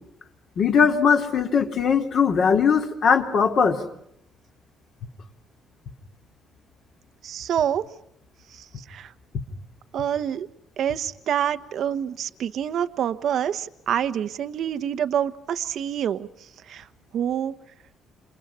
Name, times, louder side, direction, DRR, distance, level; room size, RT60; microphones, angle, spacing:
voice 1, 0.6-3.8, left 6 dB, 45° left, 4 dB, 3.3 m, -20 dB
voice 2, 7.2-7.8 8.5-9.1 9.9-10.5 10.8-16.3 16.7-16.9 17.1-17.5, right 9 dB, 55° right, 10 dB, 1.1 m, -27 dB
29.5 x 28.0 x 5.6 m, 0.74 s
cardioid pair, 160°, 0 cm